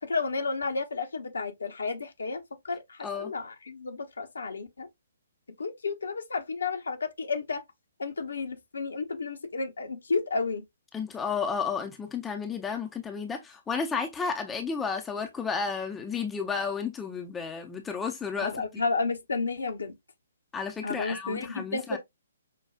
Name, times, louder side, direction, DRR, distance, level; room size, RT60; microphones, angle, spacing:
voice 1, 0.0-4.9 5.6-7.6 8.0-10.6 18.4-19.9 20.8-22.0, left 4 dB, 70° left, 0.9 m, -32 dB
voice 2, 10.9-18.8 20.5-22.0, left 5 dB, 10° left, 0.6 m, -32 dB
5.8 x 2.3 x 2.2 m
figure-of-eight pair, 130°, 0 cm